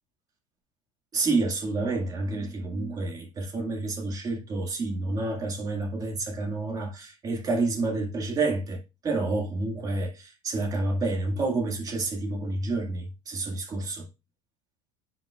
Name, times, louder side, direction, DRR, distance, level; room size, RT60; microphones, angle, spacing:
voice 1, 1.1-14.1, right 3 dB, 20° right, 1.8 m, -29 dB
9.3 x 5.5 x 2.3 m
cardioid pair, 165°, 17 cm